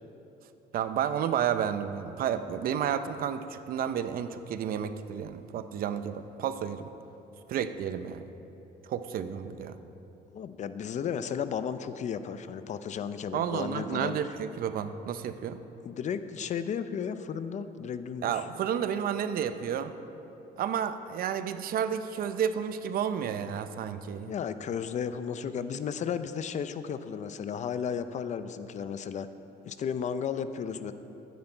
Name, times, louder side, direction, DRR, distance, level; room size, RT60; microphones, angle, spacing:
voice 1, 0.7-6.9 7.5-8.3 8.8-9.8 13.3-15.6 18.2-19.9 20.6-24.3, right 8 dB, 60° right, 11 dB, 0.6 m, -31 dB
voice 2, 10.3-14.2 15.8-18.4 24.3-29.3 29.7-30.9, left 7 dB, 45° left, 11 dB, 0.5 m, -34 dB
13.0 x 9.5 x 4.5 m, 3.0 s
cardioid pair, 110°, 17 cm